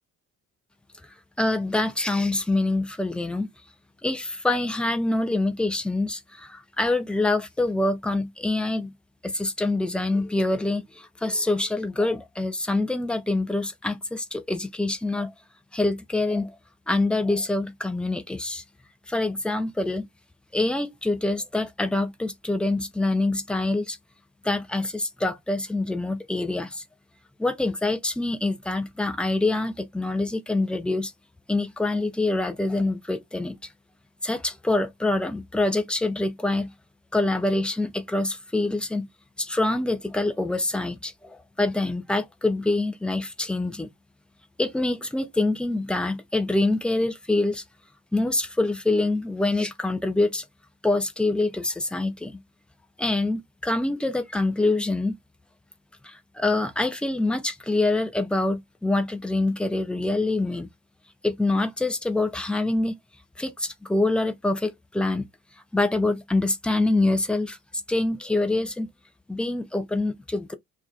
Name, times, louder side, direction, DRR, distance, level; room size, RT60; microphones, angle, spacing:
voice 1, 1.4-3.5 4.0-8.9 9.2-15.3 15.7-16.6 16.9-18.6 19.1-20.1 20.5-24.0 24.4-26.8 27.4-31.1 31.5-33.6 34.2-36.7 37.1-39.1 39.4-43.9 44.6-47.6 48.1-50.4 50.8-52.4 53.0-55.2 56.0-60.7 61.2-63.0 63.4-65.3 65.7-67.6 67.9-68.9 69.3-70.6, left 2 dB, 5° left, 0.3 m, -25 dB
2.3 x 2.2 x 3.0 m
figure-of-eight pair, 50°, 42 cm